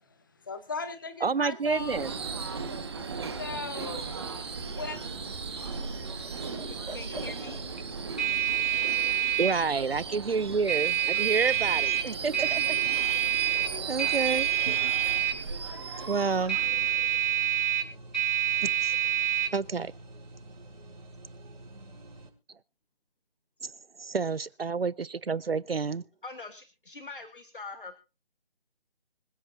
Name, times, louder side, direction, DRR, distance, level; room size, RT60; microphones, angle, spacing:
voice 1, 0.2-2.1 3.4-4.4 4.7-5.0, left 4 dB, 20° left, 1.0 m, -38 dB
voice 2, 1.2-2.1 9.4-12.8 13.3-14.5 14.8-14.9 16.1-16.6 18.6-19.0 19.5-19.9 23.6-23.7 24.0-26.1, right 5 dB, 75° right, 0.6 m, -29 dB
Subway metro underground / Screech, 1.6-17.6, right 4 dB, 25° right, 1.6 m, -37 dB
sound 1, 5.5-22.3, right 11 dB, 50° right, 4.5 m, -29 dB
voice 3, 6.5-7.6 24.0-24.1 26.2-28.0, left 3 dB, 55° left, 1.5 m, -44 dB
25.5 x 10.5 x 2.7 m
figure-of-eight pair, 155°, 30 cm